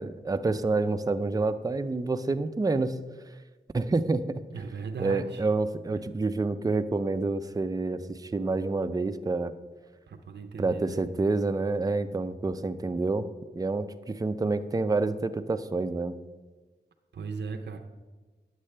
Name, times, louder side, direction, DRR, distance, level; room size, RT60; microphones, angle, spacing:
voice 1, 0.0-3.0 3.7-4.4 5.0-9.5 10.6-13.3 13.5-16.2, right 3 dB, 20° right, 10 dB, 0.4 m, -28 dB
voice 2, 4.5-5.5 5.9-6.1 10.1-11.0 17.1-17.8, right 4 dB, 75° right, 5 dB, 0.6 m, -38 dB
9.9 x 7.4 x 3.3 m, 1.3 s
wide cardioid pair, 60°, 18 cm